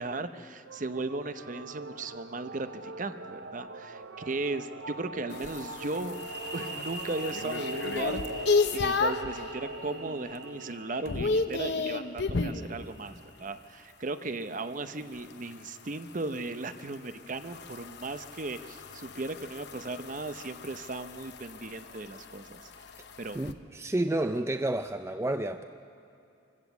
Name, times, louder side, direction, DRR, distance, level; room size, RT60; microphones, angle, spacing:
voice 1, 0.0-6.2 6.5-22.7 23.2-23.4, right 2 dB, 45° right, 10 dB, 0.7 m, -36 dB
sound 1, 0.7-12.5, right 2 dB, 85° right, 0.7 m, -43 dB
sound 2, 5.3-9.4 9.9-10.3 10.6-12.7 15.1-23.5, left 4 dB, 60° left, 0.8 m, -33 dB
sound 3, 6.1-13.6, right 1 dB, 65° right, 5.6 m, -45 dB
voice 2, 23.3-25.6, right 1 dB, 15° right, 8 dB, 0.4 m, -30 dB
25.5 x 16.0 x 7.2 m, 2.6 s
head